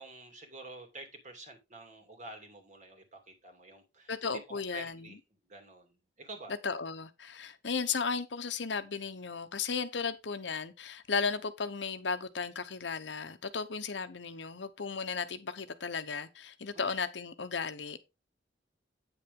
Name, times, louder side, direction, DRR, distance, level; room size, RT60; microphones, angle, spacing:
voice 1, 0.0-4.2 4.5-5.2 5.5-6.5 16.7-16.9, right 2 dB, 45° right, 2.6 m, -49 dB
voice 2, 4.1-5.2 6.6-18.0, left 5 dB, 80° left, 0.9 m, -35 dB
9.0 x 6.8 x 3.7 m
head